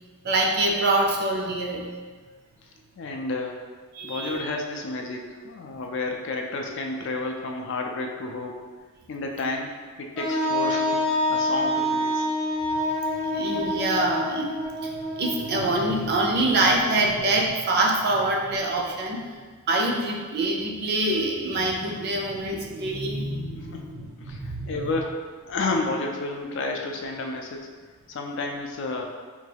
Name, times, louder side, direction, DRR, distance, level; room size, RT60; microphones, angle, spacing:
voice 1, 0.2-1.9 3.9-4.4 13.2-14.5 14.8-19.2 19.7-24.7, right 2 dB, 50° right, 0 dB, 0.4 m, -25 dB
voice 2, 3.0-3.6 4.0-8.6 9.1-9.7 10.0-12.3 23.7-27.7 28.1-29.0, left 3 dB, 60° left, 2 dB, 0.4 m, -31 dB
Wind instrument woodwind instrument, 10.1-15.9, left 1 dB, 25° left, 0.7 m, -26 dB
3.5 x 2.3 x 3.3 m, 1.5 s
head